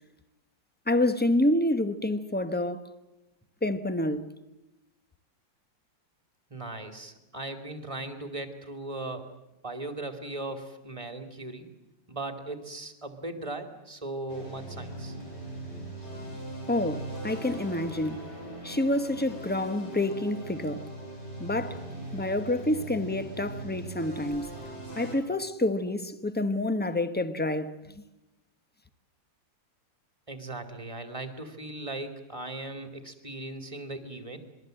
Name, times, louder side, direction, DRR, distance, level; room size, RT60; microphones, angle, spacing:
voice 1, 0.9-2.9 3.6-4.3 16.7-18.2 18.6-20.9 21.4-21.8 22.1-24.5 25.0-27.8, left 1 dB, 10° left, 0.7 m, -28 dB
voice 2, 6.5-9.3 9.6-11.7 12.1-15.1 30.3-34.4, right 2 dB, 15° right, 2.5 m, -38 dB
sound 1, 14.3-25.2, right 2 dB, 60° left, 7.6 m, -40 dB
26.5 x 22.0 x 7.8 m
omnidirectional pair, 2.0 m